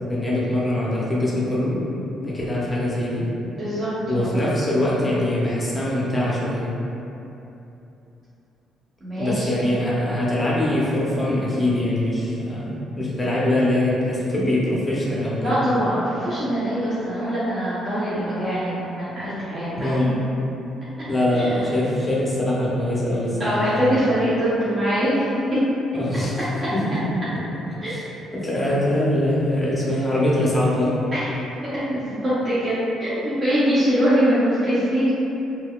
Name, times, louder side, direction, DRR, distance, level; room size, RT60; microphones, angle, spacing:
voice 1, 0.1-1.8 2.2-3.3 4.1-6.7 9.2-15.6 19.7-20.1 21.1-24.0 25.9-27.0 27.9-28.0 28.3-31.0, left 1 dB, 15° left, -7 dB, 0.6 m, -23 dB
voice 2, 3.5-4.4 9.0-9.5 15.4-20.0 21.3-21.6 23.4-25.7 27.8-27.9 31.1-31.4 31.9-32.7 33.0-35.1, equal, 30° right, -12 dB, 0.7 m, -23 dB
3.8 x 2.3 x 2.3 m, 2.9 s
cardioid pair, 120°, 0 cm